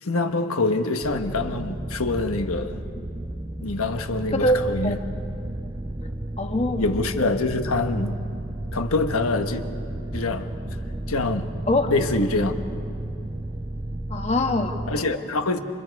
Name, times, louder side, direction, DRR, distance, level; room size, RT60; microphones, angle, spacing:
voice 1, 0.0-2.8 3.6-5.0 6.8-8.2 8.7-9.6 10.1-10.5 11.1-11.5 11.9-12.5 14.9-15.6, left 2 dB, 85° left, 1.3 m, -25 dB
sound 1, 1.0-15.0, right 1 dB, 20° right, 0.6 m, -32 dB
voice 2, 4.3-4.9 6.4-6.8 11.7-11.9 14.1-14.7, left 1 dB, 30° left, 1.3 m, -23 dB
29.0 x 27.0 x 4.7 m
head